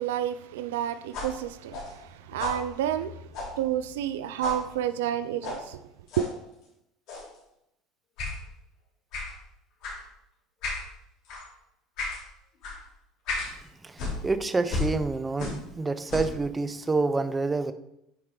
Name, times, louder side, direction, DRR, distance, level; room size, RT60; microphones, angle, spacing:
voice 1, 0.0-3.2 3.6-5.8 6.2-6.3, right 10 dB, 85° right, 0.3 m, -30 dB
sound 1, 1.1-4.1 4.4-4.6 5.4-5.6 6.1-6.3 7.1-7.4 8.2-8.4 9.1-9.3 9.8-10.0 10.6-10.9 11.3-11.5 12.0-12.2 12.6-12.8 13.3-13.5 14.0-15.7 16.0-16.4, left 3 dB, 65° left, 3.0 m, -34 dB
voice 2, 13.8-17.7, right 3 dB, 20° right, 0.6 m, -28 dB
9.2 x 4.6 x 3.8 m
hypercardioid pair, 85°, 0 cm